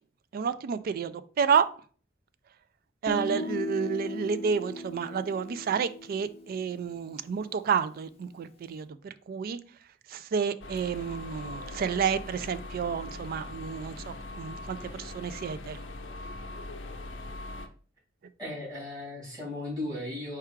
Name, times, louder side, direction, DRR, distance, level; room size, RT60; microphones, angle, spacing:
voice 1, 0.3-1.7 3.0-9.6 10.1-15.8, right 6 dB, 50° right, 0.3 m, -30 dB
Guitar, 3.1-7.0, left 2 dB, 35° left, 0.6 m, -38 dB
sound 1, 10.6-17.7, left 2 dB, 75° left, 0.6 m, -41 dB
voice 2, 18.4-20.4, left 1 dB, 20° right, 2.3 m, -36 dB
4.5 x 2.4 x 4.5 m
head